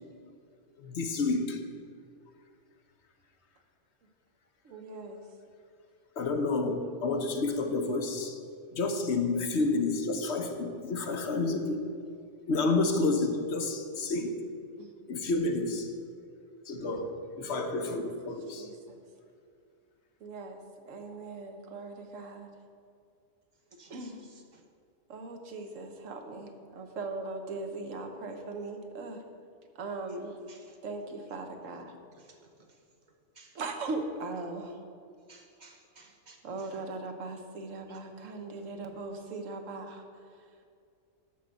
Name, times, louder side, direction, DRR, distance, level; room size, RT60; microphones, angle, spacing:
voice 1, 0.8-1.7 6.2-8.4 8.7-11.8 12.5-14.3 15.1-15.9 16.7-18.7, left 3 dB, 65° left, 5 dB, 1.1 m, -30 dB
voice 2, 4.6-5.2 14.8-14.9 18.0-18.1 18.5-19.0 20.2-22.5 23.9-24.3 25.1-29.2 29.7-30.4 30.8-32.0 33.5-34.8 36.4-40.0, right 3 dB, 85° right, 4 dB, 1.4 m, -39 dB
voice 3, 35.3-36.4 37.9-38.0, right 3 dB, 40° right, 3 dB, 1.0 m, -56 dB
11.5 x 4.0 x 7.6 m, 2.3 s
omnidirectional pair, 1.3 m